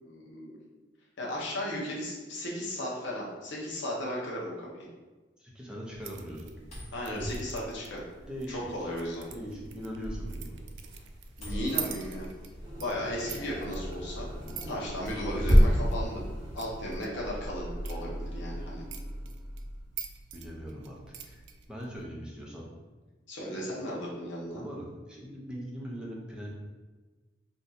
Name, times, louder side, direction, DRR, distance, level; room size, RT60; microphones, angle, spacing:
voice 1, 0.0-0.6 1.2-4.9 6.9-8.0 8.5-9.2 11.4-12.3 12.8-14.3 14.7-16.2 16.5-18.8 23.3-24.6, equal, 75° left, -4 dB, 0.7 m, -35 dB
voice 2, 5.4-6.6 8.2-8.9 9.3-10.7 14.4-14.7 18.0-18.1 20.3-21.4 21.7-22.7 24.5-26.5, equal, 5° right, -4 dB, 0.6 m, -41 dB
sound 1, 5.9-22.1, right 7 dB, 70° right, 0.3 m, -45 dB
sound 2, 6.6-17.1, equal, 35° left, 1.2 m, -30 dB
sound 3, 12.6-20.5, equal, 25° right, 0.9 m, -40 dB
2.6 x 2.3 x 4.0 m, 1.3 s
head